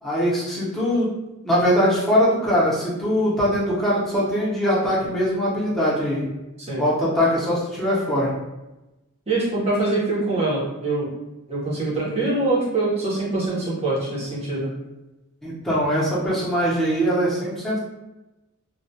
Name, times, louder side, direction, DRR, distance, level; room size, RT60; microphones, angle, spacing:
voice 1, 0.0-1.1 1.4-6.2 6.8-8.3 15.4-17.8, equal, ahead, -9 dB, 0.7 m, -21 dB
voice 2, 9.3-11.1 11.5-14.7, right 2 dB, 30° right, -6 dB, 0.8 m, -24 dB
2.3 x 2.2 x 2.6 m, 1.0 s
head